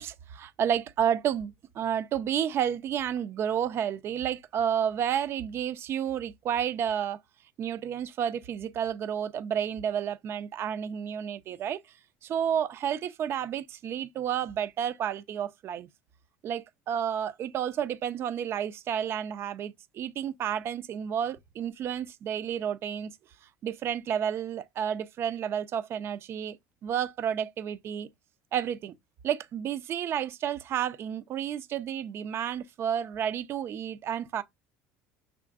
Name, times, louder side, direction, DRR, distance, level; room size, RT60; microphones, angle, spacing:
voice 1, 0.0-7.2 7.6-11.8 12.2-15.9 16.4-23.1 23.6-26.6 26.8-28.1 28.5-28.9 29.2-34.4, right 9 dB, 50° right, 0.5 m, -31 dB
5.7 x 3.6 x 2.4 m
supercardioid pair, 90°, 5 cm